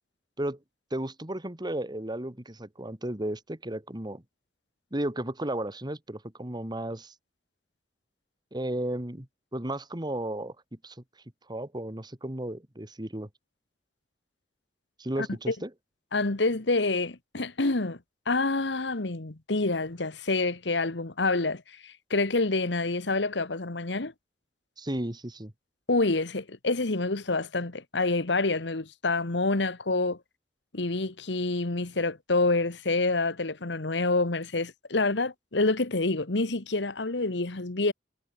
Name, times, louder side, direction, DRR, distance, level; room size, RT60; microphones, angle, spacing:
voice 1, 0.9-4.2 4.9-7.1 8.5-9.3 9.5-10.6 10.8-11.0 11.5-13.3 15.0-15.7 24.8-25.5, right 1 dB, 25° right, 2.1 m, -34 dB
voice 2, 15.2-15.5 16.1-18.0 18.3-24.1 25.9-30.2 30.7-37.9, left 3 dB, 75° left, 1.5 m, -27 dB
head